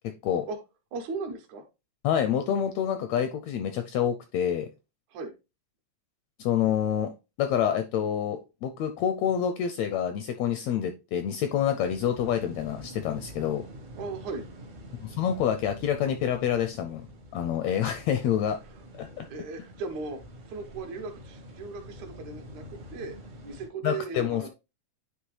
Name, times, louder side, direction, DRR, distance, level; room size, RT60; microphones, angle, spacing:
voice 1, 0.9-1.6 5.1-5.3 14.0-14.5 19.3-20.2 20.5-23.2 23.4-24.5, right 4 dB, 75° right, 4 dB, 2.3 m, -37 dB
voice 2, 2.0-4.7 6.4-7.1 7.4-13.7 15.0-17.1 17.3-18.6 18.9-19.3 23.8-24.5, left 9 dB, 80° left, 8 dB, 1.5 m, -27 dB
sound 1, 11.8-23.7, equal, 50° right, 0.9 m, -46 dB
9.6 x 3.3 x 3.2 m, 0.27 s
omnidirectional pair, 3.5 m